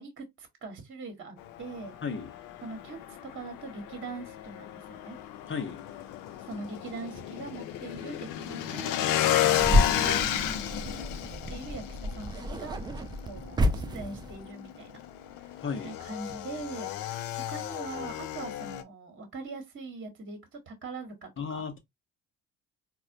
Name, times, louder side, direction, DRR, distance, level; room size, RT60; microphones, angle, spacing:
voice 1, 0.0-2.0 2.6-5.2 6.4-8.9 9.5-12.8 13.3-15.0 15.4-15.5 15.8-21.6, right 3 dB, 30° right, 1.2 m, -42 dB
Motorcycle / Engine, 1.4-18.8, left 12 dB, 55° left, 0.6 m, -33 dB
voice 2, 5.5-5.8 15.6-16.0 21.4-21.8, left 5 dB, 30° left, 0.9 m, -34 dB
sound 1, 9.6-14.5, left 1 dB, 10° right, 0.3 m, -29 dB
4.1 x 2.2 x 2.6 m
figure-of-eight pair, 55°, 40 cm